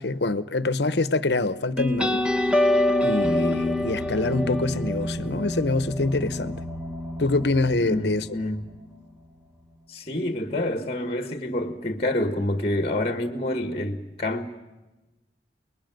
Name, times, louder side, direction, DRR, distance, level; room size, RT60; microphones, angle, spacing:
voice 1, 0.0-2.4 3.0-6.6 7.2-8.3, left 2 dB, 70° left, 1.0 m, -25 dB
sound 1, 1.8-8.9, left 1 dB, 5° right, 1.2 m, -26 dB
voice 2, 7.8-8.7 9.9-14.5, left 1 dB, 35° left, 1.5 m, -27 dB
29.5 x 21.5 x 9.3 m
head